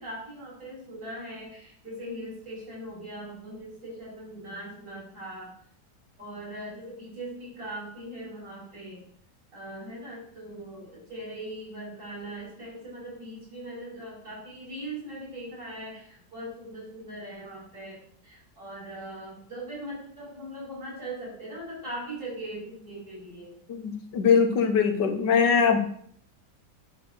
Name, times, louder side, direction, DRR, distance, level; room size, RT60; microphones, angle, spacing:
voice 1, 0.0-5.5 6.2-9.0 9.5-23.5, right 1 dB, 55° right, -6 dB, 4.8 m, -40 dB
voice 2, 23.7-25.8, left 6 dB, 90° left, 6 dB, 1.8 m, -22 dB
9.9 x 4.1 x 6.5 m, 0.63 s
omnidirectional pair, 1.8 m